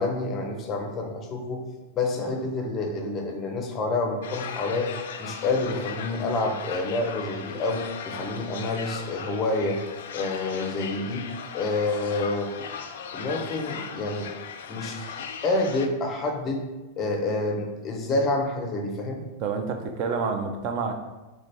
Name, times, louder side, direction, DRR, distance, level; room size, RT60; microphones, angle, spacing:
voice 1, 0.0-1.6 1.9-4.9 5.2-9.8 10.1-11.3 11.5-12.5 13.1-14.3 14.7-15.0 15.4-16.6 17.0-19.2, left 2 dB, 20° left, 2 dB, 0.6 m, -28 dB
sound 1, 4.2-15.9, left 7 dB, 65° left, 0.4 m, -38 dB
voice 2, 19.4-21.0, right 5 dB, 30° right, 5 dB, 0.5 m, -28 dB
3.5 x 3.3 x 4.1 m, 1.1 s
supercardioid pair, 170°, 0 cm